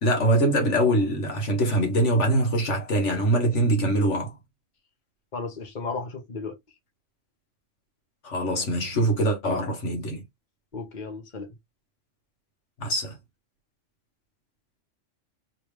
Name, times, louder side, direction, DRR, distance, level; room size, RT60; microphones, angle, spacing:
voice 1, 0.0-4.3 8.2-10.2 12.8-13.2, right 1 dB, 75° left, 1.6 m, -23 dB
voice 2, 5.3-6.5 10.7-11.5, left 4 dB, 40° left, 1.4 m, -34 dB
3.4 x 3.3 x 3.2 m
omnidirectional pair, 1.2 m